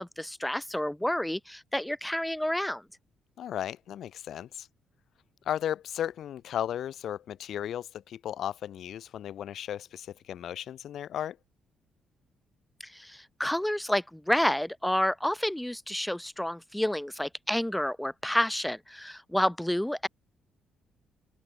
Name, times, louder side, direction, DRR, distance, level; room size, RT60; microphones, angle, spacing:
voice 1, 0.0-2.8 12.8-20.1, left 1 dB, 5° left, 1.1 m, -29 dB
voice 2, 3.4-4.7 5.5-11.4, left 10 dB, 70° left, 1.9 m, -35 dB
open air
cardioid pair, 90°, 0 cm